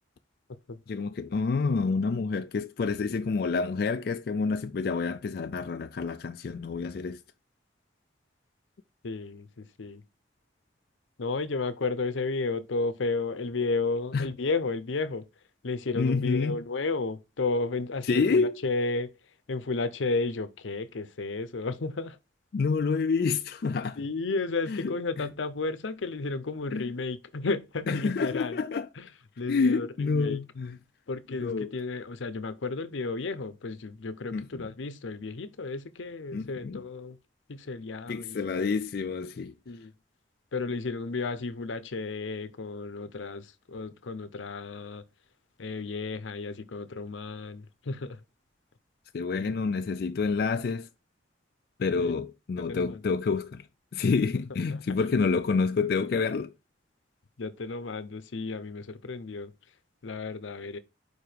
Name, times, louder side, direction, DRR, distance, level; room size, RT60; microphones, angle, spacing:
voice 1, 0.9-7.2 14.1-14.3 16.0-16.6 18.1-18.6 22.5-24.0 24.7-24.9 26.7-26.8 27.9-28.9 29.5-30.8 31.4-31.7 34.3-34.6 36.3-36.8 38.1-39.5 49.1-50.9 51.8-53.7 53.9-56.5, left 4 dB, 55° left, 0.3 m, -28 dB
voice 2, 9.0-10.0 11.2-15.3 15.6-19.1 19.5-22.2 24.0-28.6 29.0-29.1 29.4-30.4 31.1-37.2 37.5-38.4 39.7-39.9 40.5-45.0 45.6-48.2 49.3-49.5 52.0-52.1 52.6-53.0 57.4-59.5 60.0-60.8, left 3 dB, 90° left, 0.7 m, -33 dB
4.7 x 4.7 x 5.0 m
head